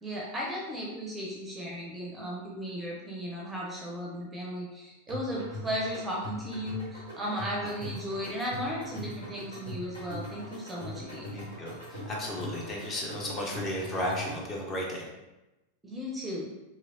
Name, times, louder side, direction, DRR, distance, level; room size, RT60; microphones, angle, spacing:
voice 1, 0.0-11.3 15.8-16.5, equal, 10° right, -3 dB, 0.6 m, -35 dB
sound 1, 5.1-14.6, left 1 dB, 70° left, 1.2 m, -41 dB
voice 2, 11.3-15.0, left 1 dB, 25° left, -2 dB, 0.8 m, -34 dB
3.1 x 2.7 x 2.6 m, 1.0 s
figure-of-eight pair, 90°, 0 cm